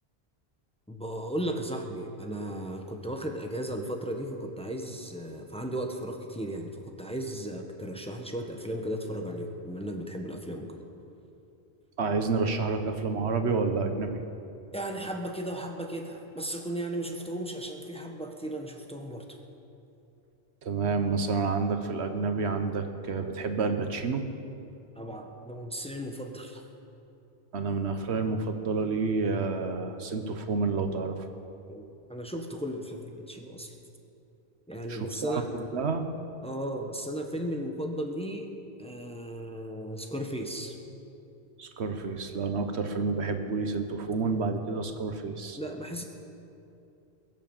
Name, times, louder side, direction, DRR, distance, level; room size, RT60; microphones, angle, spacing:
voice 1, 0.9-10.8 14.7-19.4 24.9-26.6 31.7-33.7 34.7-35.5 36.4-38.5 38.8-40.7 45.6-46.0, right 1 dB, 5° left, 3 dB, 1.1 m, -35 dB
voice 2, 12.0-14.2 20.6-24.3 27.5-31.3 34.9-35.4 35.7-36.1 41.6-45.6, right 4 dB, 85° right, 7 dB, 1.3 m, -29 dB
22.0 x 7.4 x 7.2 m, 2.7 s
omnidirectional pair, 1.1 m